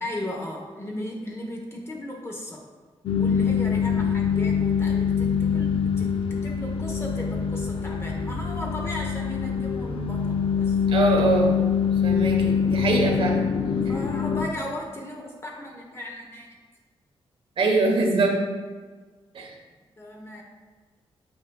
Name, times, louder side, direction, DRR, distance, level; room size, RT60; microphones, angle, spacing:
voice 1, 0.0-2.6 3.1-10.8 13.8-16.5 20.0-20.4, left 1 dB, 25° left, -1 dB, 0.9 m, -36 dB
sound 1, 3.1-14.5, left 6 dB, 60° left, 0.6 m, -24 dB
voice 2, 10.9-11.6 12.0-13.5 17.6-18.4 19.3-19.5, right 3 dB, 60° right, 1 dB, 1.1 m, -23 dB
8.7 x 5.6 x 2.3 m, 1.4 s
wide cardioid pair, 125°, 10 cm